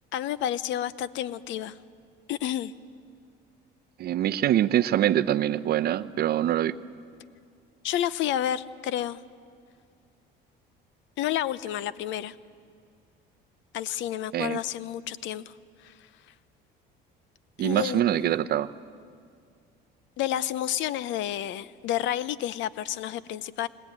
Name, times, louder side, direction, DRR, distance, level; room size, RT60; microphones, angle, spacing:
voice 1, 0.1-1.8 2.3-2.7 7.8-9.2 11.2-12.3 13.7-15.5 15.8-15.9 17.6-18.4 20.2-23.7, left 11 dB, 65° left, 17 dB, 0.7 m, -30 dB
voice 2, 4.0-6.8 14.3-14.6 17.6-18.7, right 12 dB, 50° right, 12 dB, 0.6 m, -24 dB
20.5 x 19.0 x 9.1 m, 2.2 s
cardioid pair, 115°, 21 cm